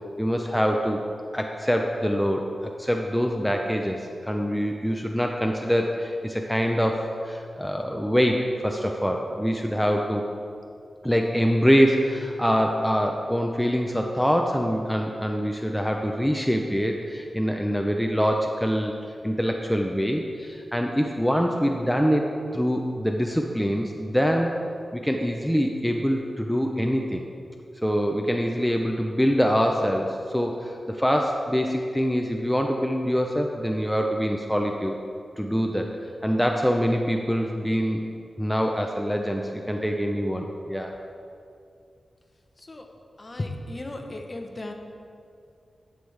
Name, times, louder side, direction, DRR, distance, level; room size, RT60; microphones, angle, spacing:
voice 1, 0.2-1.0 1.3-10.2 11.0-18.9 19.2-22.3 22.5-24.5 24.9-27.2 27.8-35.0 35.4-35.9 36.2-38.0 38.4-40.9, equal, ahead, 2 dB, 0.5 m, -24 dB
voice 2, 43.2-44.7, left 2 dB, 30° left, 3 dB, 0.9 m, -35 dB
11.5 x 7.1 x 3.3 m, 2.4 s
wide cardioid pair, 90°, 0 cm